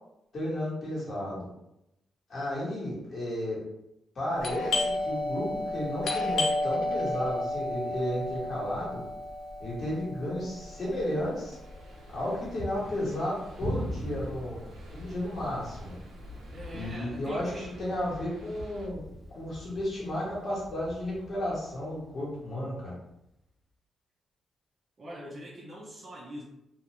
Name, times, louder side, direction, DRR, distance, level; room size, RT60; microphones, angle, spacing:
voice 1, 0.3-1.5 2.3-3.6 4.1-9.0 9.6-11.6 12.1-15.9 16.7-17.5 17.8-19.0 19.3-22.9, left 1 dB, 45° left, -6 dB, 1.3 m, -33 dB
Doorbell, 4.4-13.8 14.0-14.1 14.8-15.1 15.4-16.8, left 2 dB, 70° left, 0.5 m, -32 dB
sound 1, 10.5-18.9, right 1 dB, 90° right, 0.5 m, -49 dB
Thunder, 13.6-23.0, equal, 15° right, 1.0 m, -42 dB
voice 2, 16.5-17.8 25.0-26.4, equal, 35° right, -4 dB, 0.6 m, -43 dB
2.4 x 2.2 x 2.9 m, 0.85 s
cardioid pair, 125°, 0 cm